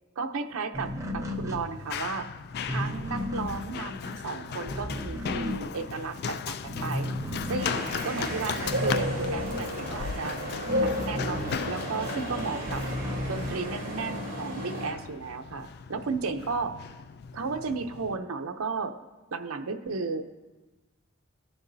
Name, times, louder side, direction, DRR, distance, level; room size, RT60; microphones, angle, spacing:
voice 1, 0.2-2.3 2.7-7.1 7.5-10.4 10.8-12.8 13.3-16.7 17.3-18.9 19.3-20.4, right 4 dB, 75° right, 6 dB, 0.6 m, -34 dB
sound 1, 0.7-6.3 6.6-12.1 12.4-14.2, left 1 dB, 15° right, 0.8 m, -35 dB
Run, 0.9-18.2, left 7 dB, 50° left, 0.3 m, -38 dB
sound 2, 7.6-14.9, equal, 40° right, 2.9 m, -33 dB
19.5 x 7.0 x 2.7 m, 1.2 s
head